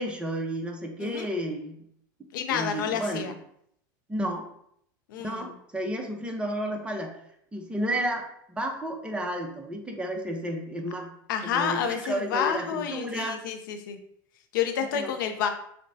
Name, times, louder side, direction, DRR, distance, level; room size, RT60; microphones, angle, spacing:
voice 1, 0.0-1.8 2.5-3.3 4.1-4.5 5.2-7.1 7.5-8.3 8.6-11.1 11.4-13.4 14.8-15.1, right 1 dB, 10° right, 2 dB, 0.7 m, -32 dB
voice 2, 1.0-1.3 2.3-3.3 5.1-5.5 11.3-14.0 14.5-15.5, left 8 dB, 80° left, 6 dB, 0.6 m, -29 dB
6.5 x 2.2 x 2.7 m, 0.70 s
supercardioid pair, 110°, 11 cm